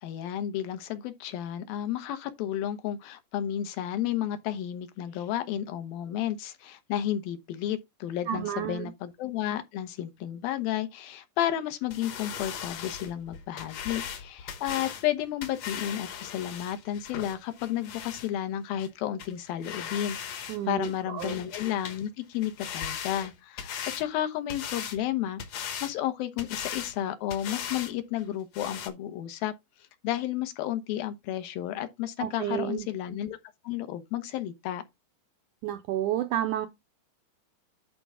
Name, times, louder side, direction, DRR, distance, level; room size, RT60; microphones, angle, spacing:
voice 1, 0.0-25.4 25.8-29.5 30.0-33.4 33.6-34.8, left 11 dB, 80° left, 2.8 m, -32 dB
voice 2, 8.3-8.9 20.5-21.4 32.2-32.9 35.6-36.7, right 11 dB, 80° right, 1.7 m, -31 dB
sound 1, 11.9-18.3 18.8-18.9 19.2-19.3 19.6-20.6 20.8-22.0 22.3-24.1 24.5-25.0 25.4-25.9 26.4-27.0 27.3-27.9 28.2-28.3 28.5-28.9, left 8 dB, 60° left, 1.9 m, -38 dB
11.0 x 4.5 x 3.6 m
omnidirectional pair, 4.2 m